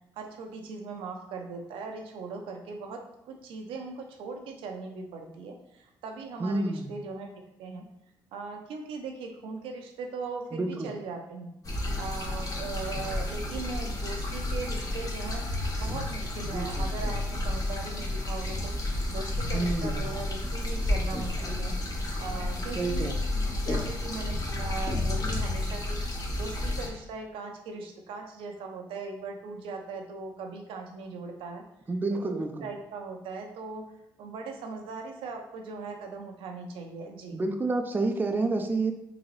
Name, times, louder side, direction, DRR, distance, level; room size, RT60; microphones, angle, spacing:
voice 1, 0.2-7.3 7.6-7.9 8.3-11.5 12.0-18.7 19.1-21.8 22.2-31.6 32.1-33.8 34.2-37.4, right 4 dB, 80° right, 3 dB, 0.6 m, -39 dB
voice 2, 6.4-6.9 10.5-10.9 16.5-16.9 19.5-20.1 22.8-23.3 31.9-32.7 37.3-38.9, right 2 dB, 20° right, 5 dB, 0.4 m, -29 dB
sound 1, 11.6-26.9, left 1 dB, 40° left, 0.9 m, -31 dB
3.9 x 2.7 x 3.1 m, 0.83 s
supercardioid pair, 75°, 9 cm